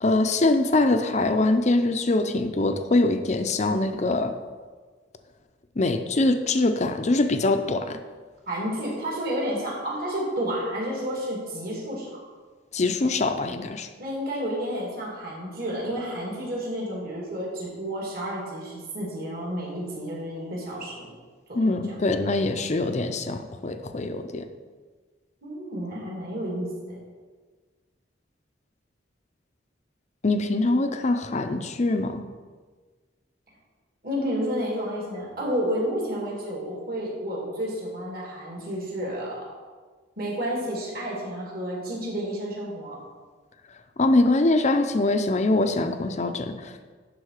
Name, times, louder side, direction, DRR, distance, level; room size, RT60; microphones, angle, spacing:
voice 1, 0.0-4.3 5.8-8.0 12.7-13.9 21.5-24.5 30.2-32.2 44.0-46.7, left 2 dB, 35° left, 8 dB, 0.6 m, -23 dB
voice 2, 8.5-12.2 14.0-21.1 21.5-21.9 25.4-27.0 34.0-39.4 40.2-43.0, equal, 50° right, -3 dB, 2.7 m, -31 dB
11.0 x 3.9 x 6.5 m, 1.4 s
head